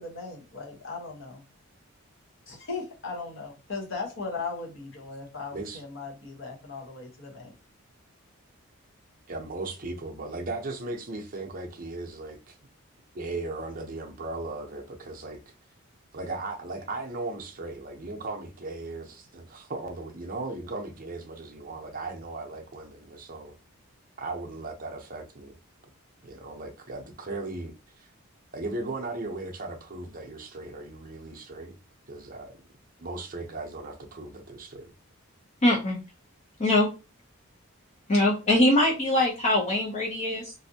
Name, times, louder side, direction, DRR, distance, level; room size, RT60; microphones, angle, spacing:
voice 1, 0.0-1.4 2.5-7.5, left 4 dB, 60° left, 1.0 m, -37 dB
voice 2, 9.3-12.5 13.1-15.4 16.1-23.5 24.2-25.6 26.2-28.1 28.5-31.7 32.1-32.5 33.0-34.9, right 2 dB, 40° right, 0.6 m, -37 dB
voice 3, 35.6-36.0 36.6-36.9 38.1-40.5, left 1 dB, 30° left, 0.5 m, -22 dB
3.2 x 2.6 x 2.7 m
head